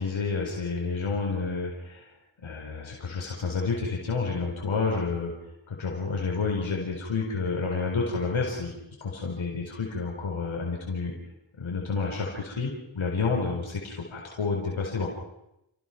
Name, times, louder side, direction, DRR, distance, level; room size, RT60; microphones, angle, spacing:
voice 1, 0.0-2.1 2.4-5.3 5.7-8.7 9.0-11.1 11.6-15.1, left 4 dB, 85° left, -1 dB, 4.5 m, -29 dB
29.0 x 18.5 x 6.0 m, 0.86 s
cardioid pair, 40°, 46 cm